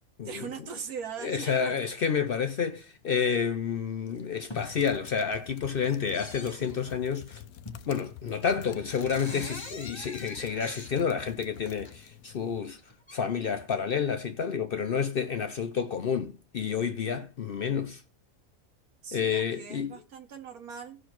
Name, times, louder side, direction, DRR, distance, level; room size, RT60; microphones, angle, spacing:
voice 1, 0.2-1.7 19.0-21.0, right 6 dB, 85° right, 1.5 m, -40 dB
voice 2, 1.2-7.4 7.9-12.8 13.1-18.0 19.1-20.0, left 6 dB, 60° left, 0.6 m, -29 dB
sound 1, 1.7-1.8 2.7-2.9 3.5-3.6 4.0-4.7 5.1-5.5 5.8-7.0 7.6-8.0 8.3-8.4 8.6-11.9 12.7-13.2, left 2 dB, 20° left, 1.1 m, -44 dB
sound 2, 4.6-12.6, left 10 dB, 75° left, 1.1 m, -48 dB
17.0 x 6.1 x 3.0 m
omnidirectional pair, 1.5 m